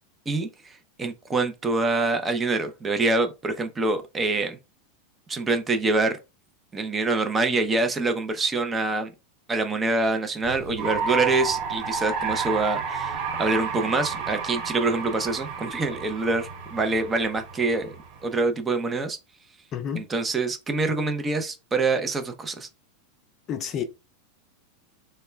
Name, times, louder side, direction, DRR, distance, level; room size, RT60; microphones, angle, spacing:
voice 1, 0.3-4.6 5.3-6.2 6.7-9.1 9.5-17.9 18.2-19.2 19.9-22.7, right 3 dB, 20° right, 0.5 m, -25 dB
sound 1, 10.4-18.4, right 5 dB, 60° right, 1.2 m, -31 dB
voice 2, 19.7-20.0 23.5-23.8, left 8 dB, 35° left, 0.5 m, -29 dB
2.2 x 2.1 x 3.2 m
hypercardioid pair, 105°, 0 cm